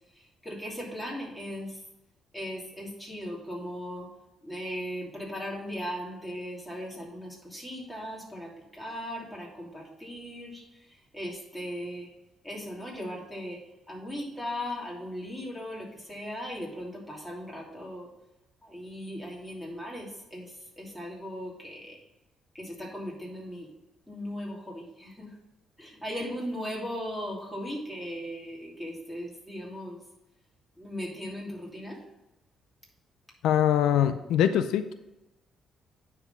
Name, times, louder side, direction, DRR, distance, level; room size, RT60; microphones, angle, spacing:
voice 1, 0.4-1.7 2.3-4.1 4.4-8.5 8.8-10.6 11.1-12.1 12.4-13.6 13.9-18.1 18.6-20.5 20.8-22.0 22.6-23.7 24.1-25.3 25.8-30.0 30.8-32.0, equal, 5° left, -3 dB, 2.8 m, -38 dB
voice 2, 33.4-34.9, left 10 dB, 85° left, 10 dB, 0.4 m, -23 dB
9.7 x 4.0 x 5.4 m, 0.97 s
cardioid pair, 90°, 0 cm